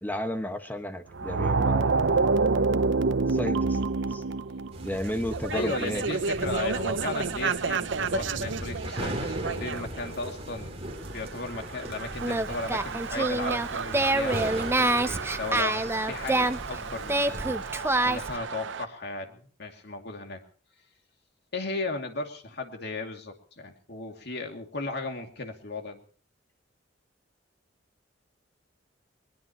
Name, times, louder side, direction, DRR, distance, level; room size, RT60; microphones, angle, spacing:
voice 1, 0.0-1.9 3.3-3.8 4.1-4.2 4.8-6.0, equal, 10° left, 7 dB, 1.5 m, -32 dB
sound 1, 1.1-10.0 11.5-18.8, right 4 dB, 75° right, 0.7 m, -29 dB
sound 2, 4.7-17.5, right 1 dB, 35° right, 3.3 m, -39 dB
voice 2, 5.5-10.8 11.1-20.4 21.5-26.0, left 3 dB, 60° left, 4 dB, 2.6 m, -36 dB
Singing, 12.1-18.4, right 2 dB, 15° right, 0.7 m, -27 dB
21.0 x 21.0 x 3.0 m, 0.42 s
head